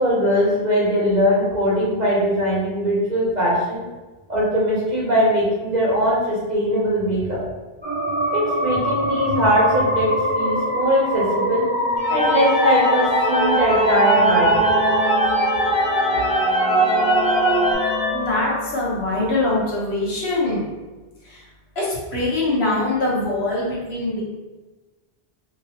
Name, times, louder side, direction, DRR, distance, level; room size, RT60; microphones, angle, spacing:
voice 1, 0.0-3.8 4.3-7.4 8.3-11.6 12.1-14.7, equal, 45° right, -6 dB, 0.9 m, -20 dB
sound 1, 7.8-17.7, right 2 dB, 10° right, 1.4 m, -22 dB
sound 2, 12.0-19.0, left 3 dB, 55° left, 0.6 m, -24 dB
voice 2, 18.1-20.6 21.2-21.4 21.8-24.2, left 2 dB, 75° left, -6 dB, 1.2 m, -23 dB
2.8 x 2.6 x 2.8 m, 1.2 s
omnidirectional pair, 1.1 m